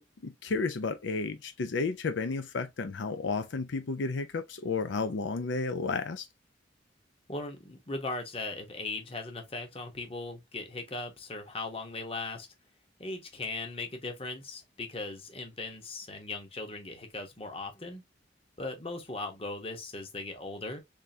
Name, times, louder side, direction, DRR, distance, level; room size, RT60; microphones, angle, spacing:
voice 1, 0.0-6.3, left 4 dB, 85° left, 0.5 m, -32 dB
voice 2, 7.3-12.5 13.0-18.0 18.6-20.8, left 3 dB, 30° left, 1.0 m, -38 dB
3.6 x 3.3 x 2.7 m
head